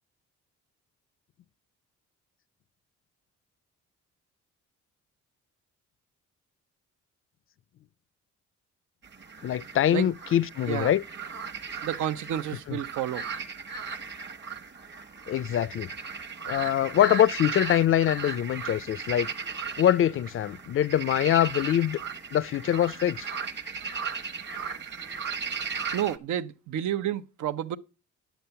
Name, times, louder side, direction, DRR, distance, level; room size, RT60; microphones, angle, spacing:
sound 1, 9.0-26.2, right 5 dB, 35° right, 1.1 m, -37 dB
voice 1, 9.4-11.0 12.7-12.8 15.3-15.9 16.5-19.3 19.8-22.0 22.3-23.3, left 11 dB, 45° left, 0.4 m, -24 dB
voice 2, 11.8-13.2 25.9-27.8, right 11 dB, 75° right, 0.8 m, -30 dB
10.0 x 7.0 x 5.7 m
cardioid pair, 90°, 30 cm